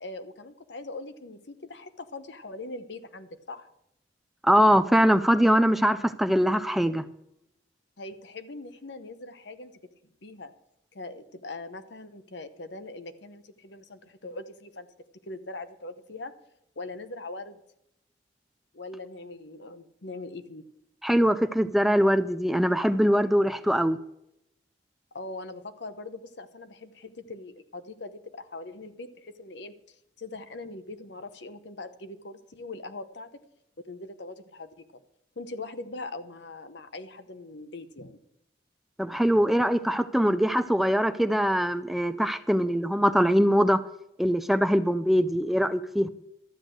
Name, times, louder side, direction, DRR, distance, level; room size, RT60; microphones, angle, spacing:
voice 1, 0.0-3.7 8.0-9.7 10.2-10.5 10.9-14.9 15.2-16.3 16.8-17.6 18.7-20.7 25.1-33.4 33.8-35.0 35.4-38.2, left 2 dB, 65° left, 0.9 m, -41 dB
voice 2, 4.4-7.0 21.0-24.0 39.0-43.8 44.2-46.1, equal, ahead, 0.3 m, -22 dB
12.5 x 8.1 x 6.5 m
head